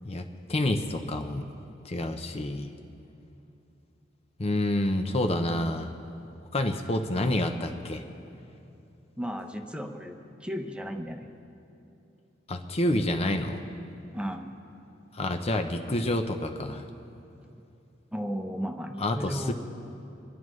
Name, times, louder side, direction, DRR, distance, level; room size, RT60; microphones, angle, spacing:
voice 1, 0.0-1.5 1.8-2.7 4.4-5.9 6.5-8.0 12.5-13.6 15.1-16.9 19.0-19.5, left 1 dB, 35° left, 6 dB, 0.7 m, -28 dB
voice 2, 9.2-11.3 14.1-14.5 18.1-19.5, equal, 5° right, 4 dB, 0.9 m, -34 dB
28.0 x 11.0 x 3.2 m, 2.8 s
head